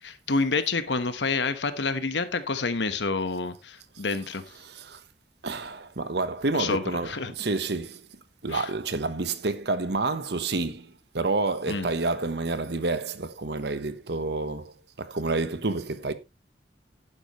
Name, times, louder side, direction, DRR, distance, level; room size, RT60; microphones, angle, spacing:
voice 1, 0.0-4.4 6.5-7.3 8.5-8.7 11.7-11.9, left 4 dB, 85° left, 1.2 m, -28 dB
voice 2, 4.1-5.0 5.4-8.1 8.4-16.1, right 3 dB, 65° right, 1.1 m, -29 dB
11.5 x 9.9 x 3.1 m
head